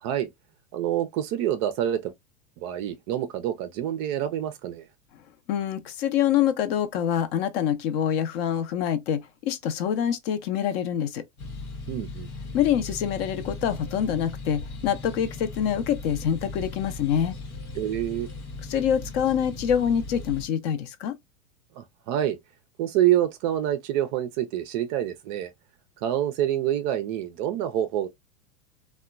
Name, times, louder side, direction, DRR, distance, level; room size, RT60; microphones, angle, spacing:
voice 1, 0.7-2.1 2.6-4.8 11.9-12.3 17.7-18.3 21.8-22.4 22.8-25.5 26.0-28.1, right 11 dB, 35° right, 0.4 m, -27 dB
voice 2, 5.5-11.2 12.5-17.4 18.7-21.1, left 9 dB, 45° left, 0.5 m, -25 dB
sound 1, 11.4-20.5, left 3 dB, 90° left, 1.0 m, -38 dB
2.8 x 2.1 x 2.2 m
hypercardioid pair, 100°, 43 cm